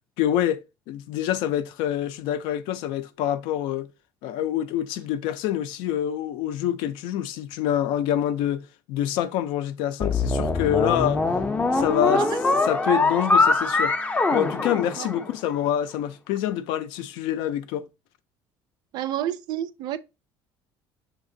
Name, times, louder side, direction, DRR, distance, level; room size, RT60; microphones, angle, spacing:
voice 1, 0.2-0.6 0.9-3.9 4.2-11.2 11.7-13.9 14.3-17.9, left 11 dB, 85° left, 0.4 m, -26 dB
sound 1, 10.0-15.5, left 3 dB, 15° left, 0.4 m, -23 dB
voice 2, 18.9-20.0, right 11 dB, 60° right, 0.4 m, -29 dB
6.3 x 2.9 x 2.6 m
cardioid pair, 125°, 8 cm